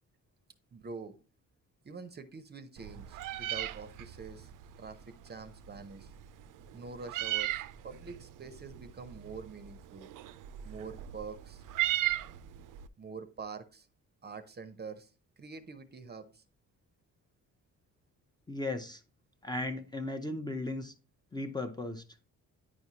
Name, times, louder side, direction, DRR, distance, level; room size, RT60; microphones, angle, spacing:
voice 1, 0.7-1.2 1.8-4.5 4.8-6.1 6.7-10.1 10.6-11.6 13.0-13.9 14.2-15.1 15.4-16.4, right 5 dB, 30° right, 0.6 m, -45 dB
Meow, 2.8-12.9, right 14 dB, 70° right, 0.5 m, -38 dB
voice 2, 18.5-19.0 19.4-20.9 21.3-22.0, left 2 dB, 10° left, 0.6 m, -36 dB
9.6 x 4.7 x 2.8 m
cardioid pair, 110°, 33 cm